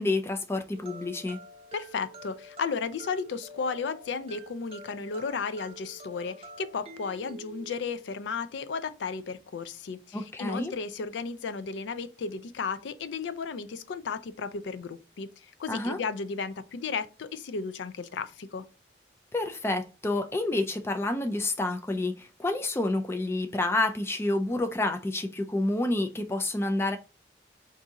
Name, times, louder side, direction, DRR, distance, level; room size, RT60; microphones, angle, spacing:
voice 1, 0.0-1.4 10.1-10.7 15.7-16.0 19.3-27.0, left 2 dB, 15° left, 0.3 m, -29 dB
Minor Key Music Box, 0.7-7.8, right 1 dB, 30° right, 0.7 m, -47 dB
voice 2, 1.7-18.6, left 5 dB, 85° left, 0.4 m, -34 dB
3.9 x 2.6 x 3.5 m
head